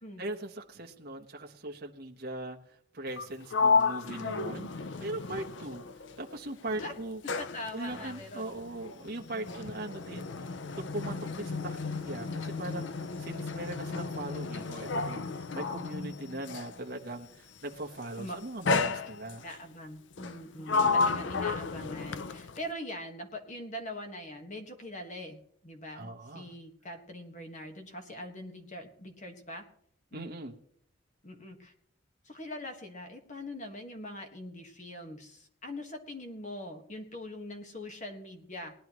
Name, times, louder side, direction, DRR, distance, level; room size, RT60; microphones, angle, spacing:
voice 1, 0.2-5.9 6.2-7.2 7.7-19.4 20.7-21.3 25.9-26.5 30.1-30.6, right 1 dB, 50° right, 1 dB, 1.1 m, -40 dB
Sliding door, 3.1-6.4 6.7-16.8 17.7-18.0 18.7-19.6 20.2-22.7, left 4 dB, 60° left, 0.5 m, -32 dB
voice 2, 7.2-8.5 9.3-9.6 18.2-18.4 19.4-29.6 30.1-30.4 31.2-31.7 32.2-38.7, left 1 dB, 35° left, 4 dB, 1.5 m, -42 dB
19.5 x 11.0 x 3.1 m, 0.63 s
head